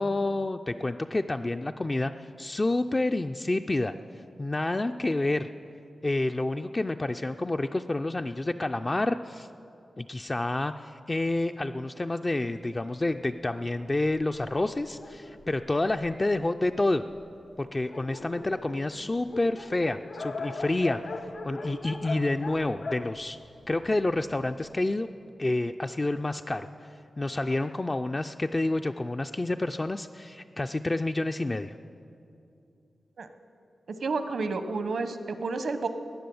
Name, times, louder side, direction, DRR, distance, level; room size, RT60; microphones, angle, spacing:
voice 1, 0.0-3.9 4.4-5.5 6.0-9.5 10.0-17.0 17.6-21.0 21.4-23.4 23.7-25.1 25.4-26.9 27.2-31.8, left 2 dB, 25° left, 6 dB, 0.3 m, -29 dB
Dog, 13.4-16.4 17.1-17.2 17.5-17.6 17.8-24.2, left 3 dB, 60° left, 1.1 m, -40 dB
voice 2, 34.0-35.9, right 3 dB, 70° right, 9 dB, 0.9 m, -30 dB
18.0 x 9.7 x 7.0 m, 2.7 s
wide cardioid pair, 110°, 0 cm